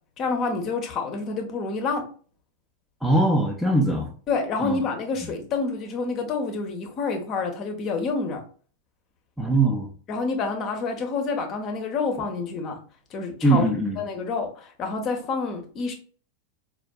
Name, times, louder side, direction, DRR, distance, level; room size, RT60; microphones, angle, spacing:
voice 1, 0.2-2.1 4.3-8.4 10.1-12.8 13.1-13.7 14.0-15.9, left 4 dB, 35° left, 4 dB, 0.7 m, -28 dB
voice 2, 3.0-4.1 4.6-4.8 9.4-9.9 13.4-14.0, right 2 dB, ahead, 1 dB, 0.5 m, -21 dB
4.2 x 2.4 x 2.2 m, 0.41 s
figure-of-eight pair, 90°, 0 cm